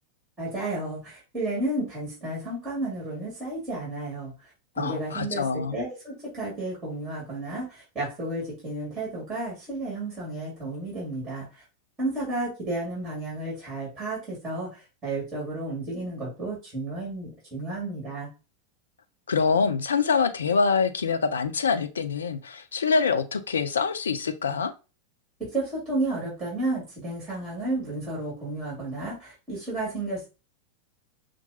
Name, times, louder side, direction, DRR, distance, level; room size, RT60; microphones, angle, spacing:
voice 1, 0.4-4.3 4.8-11.6 12.0-18.3 25.4-30.3, right 2 dB, 20° right, 2.3 m, -32 dB
voice 2, 4.8-5.8 19.3-24.7, left 5 dB, 70° left, 0.5 m, -25 dB
5.7 x 2.2 x 2.8 m
figure-of-eight pair, 90°, 0 cm